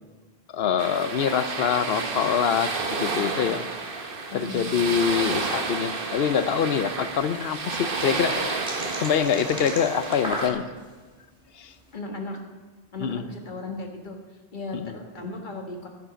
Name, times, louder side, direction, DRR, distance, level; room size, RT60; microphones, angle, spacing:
voice 1, 0.5-3.7 4.3-8.6 8.8-10.7 11.6-11.7 13.0-13.2 14.7-15.0, left 8 dB, 75° left, 12 dB, 0.9 m, -25 dB
sound 1, 0.8-10.5, right 4 dB, 60° right, 1.2 m, -31 dB
voice 2, 4.3-4.7 6.9-7.0 11.9-12.4 12.9-14.2 14.5-15.9, left 2 dB, 50° left, 2 dB, 1.7 m, -36 dB
sound 2, 7.7-11.0 11.5-11.8, equal, 5° right, 2.1 m, -35 dB
11.5 x 11.0 x 5.1 m, 1.3 s
omnidirectional pair, 1.0 m